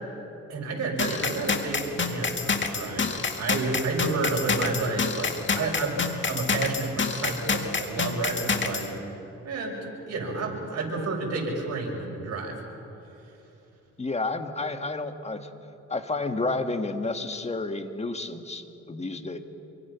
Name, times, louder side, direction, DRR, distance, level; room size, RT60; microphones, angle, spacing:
voice 1, 0.5-6.0 6.3-8.9 9.4-12.6, right 3 dB, 55° right, -1 dB, 7.1 m, -30 dB
sound 1, 1.0-8.9, left 5 dB, 40° left, 2.0 m, -28 dB
voice 2, 14.0-15.5 15.9-19.4, left 3 dB, 20° left, 7 dB, 1.7 m, -30 dB
27.0 x 24.5 x 5.9 m, 2.9 s
cardioid pair, 90°, 30 cm